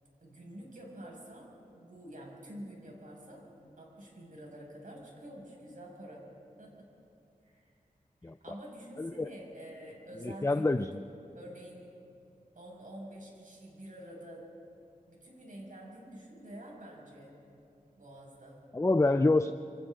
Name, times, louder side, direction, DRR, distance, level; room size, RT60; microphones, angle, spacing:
voice 1, 0.2-3.5 3.8-6.3 6.6-6.9 7.4-7.7 8.2-11.0 11.3-11.9 12.5-14.5 15.1-17.3 18.0-18.6, right 1 dB, 65° right, -2 dB, 5.9 m, -48 dB
voice 2, 9.0-9.3 10.2-10.9 18.7-19.5, left 2 dB, 20° left, 9 dB, 0.5 m, -26 dB
27.0 x 27.0 x 3.8 m, 2.6 s
wide cardioid pair, 80°, 15 cm